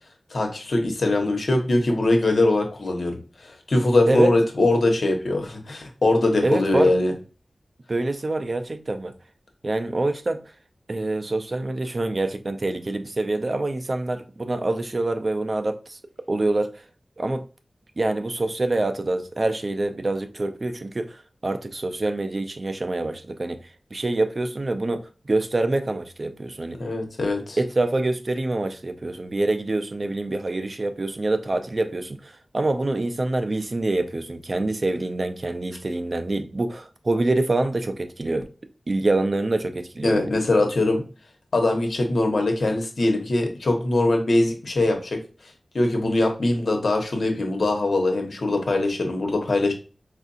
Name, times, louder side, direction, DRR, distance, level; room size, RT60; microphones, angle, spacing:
voice 1, 0.3-7.1 26.8-27.6 40.0-41.0 41.5-45.2 45.7-49.7, left 2 dB, 65° left, 1.0 m, -22 dB
voice 2, 6.4-6.9 7.9-9.1 9.6-10.4 10.9-16.0 16.3-16.8 17.2-17.4 18.0-23.6 23.9-26.8 27.6-38.5 38.9-40.2, right 2 dB, 45° right, 0.5 m, -25 dB
4.6 x 2.4 x 2.5 m
wide cardioid pair, 85°, 0 cm